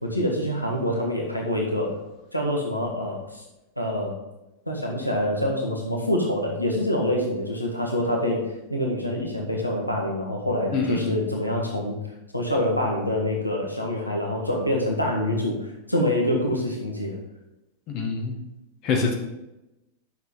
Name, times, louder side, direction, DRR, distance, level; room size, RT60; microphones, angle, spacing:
voice 1, 0.0-2.0 2.3-3.4 3.8-4.1 4.7-11.9 12.3-15.6 15.9-17.2, left 1 dB, 85° left, 0 dB, 1.6 m, -26 dB
voice 2, 10.7-11.1 17.9-18.3 18.8-19.1, left 4 dB, 40° left, 1 dB, 1.7 m, -25 dB
10.0 x 6.5 x 3.7 m, 0.94 s
figure-of-eight pair, 90°, 0 cm